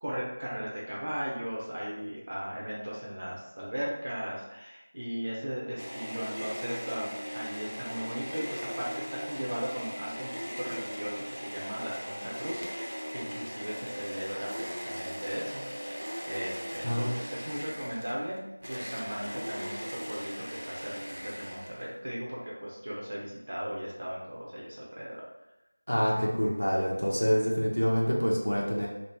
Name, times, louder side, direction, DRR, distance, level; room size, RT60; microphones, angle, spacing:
voice 1, 0.0-10.3 10.6-16.0 16.2-18.4 18.7-19.8 20.1-25.2, equal, 30° right, -5 dB, 0.4 m, -37 dB
sound 1, 5.8-22.0, equal, 80° right, 0.6 m, -39 dB
voice 2, 25.9-28.9, equal, 70° left, -3 dB, 0.6 m, -26 dB
2.5 x 2.0 x 3.3 m, 0.94 s
figure-of-eight pair, 175°, 0 cm